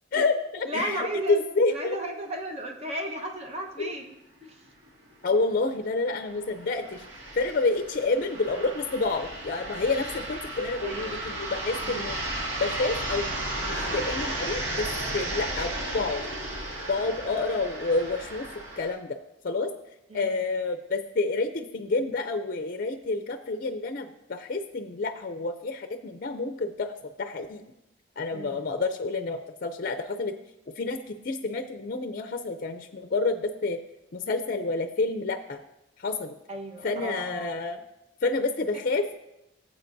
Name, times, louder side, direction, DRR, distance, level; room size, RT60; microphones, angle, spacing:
voice 1, 0.1-2.0 3.8-3.9 5.2-7.1 7.4-12.2 12.6-16.2 16.9-18.5 18.8-19.2 19.4-19.7 20.1-26.9 27.2-27.6 28.2-30.3 30.8-33.8 34.1-35.6 36.0-36.3 36.8-37.8 38.2-39.2, left 3 dB, 50° left, 7 dB, 0.5 m, -29 dB
voice 2, 0.6-1.4 1.7-4.1 4.4-4.5 10.8-11.2 11.9-12.1 20.1-20.3 28.3-28.6 36.5-37.5, right 1 dB, 35° right, 2 dB, 1.1 m, -34 dB
sound 1, 4.8-4.9 5.2-5.3 6.1-18.9, right 1 dB, 80° right, 2.0 m, -34 dB
15.0 x 7.5 x 2.6 m, 0.90 s
head